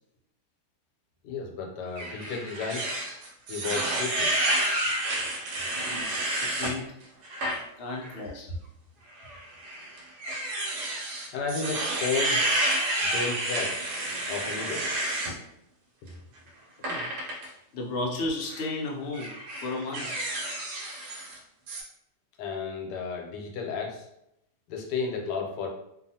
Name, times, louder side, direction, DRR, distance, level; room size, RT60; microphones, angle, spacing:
voice 1, 1.2-2.9 3.5-4.3 5.1-5.2 11.3-12.4 13.0-13.8 14.3-14.9 22.4-24.1 24.7-25.7, left 5 dB, 90° left, 1 dB, 1.2 m, -33 dB
sound 1, 2.0-6.7 7.2-7.6 8.0-8.2 9.2-15.3 16.8-17.5 18.4-18.7 19.1-21.4 21.7-21.8, right 1 dB, 75° right, 1.2 m, -30 dB
voice 2, 6.6-6.9 7.8-8.5 16.9-17.1 17.7-19.3 19.6-20.1, left 2 dB, 65° left, -1 dB, 0.6 m, -33 dB
2.7 x 2.3 x 2.7 m, 0.80 s
omnidirectional pair, 1.8 m